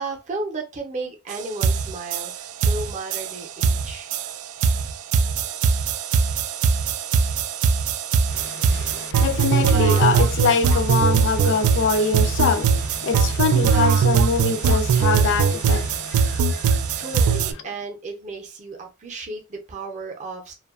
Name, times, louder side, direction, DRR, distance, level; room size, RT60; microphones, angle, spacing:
voice 1, 0.0-4.1 8.8-9.1 17.0-20.5, right 3 dB, 35° right, 0.5 m, -34 dB
sound 1, 1.3-1.4 1.6-17.5, right 6 dB, 90° right, 0.3 m, -21 dB
voice 2, 8.3-16.9, left 5 dB, 60° left, 0.4 m, -24 dB
2.6 x 2.2 x 2.3 m
head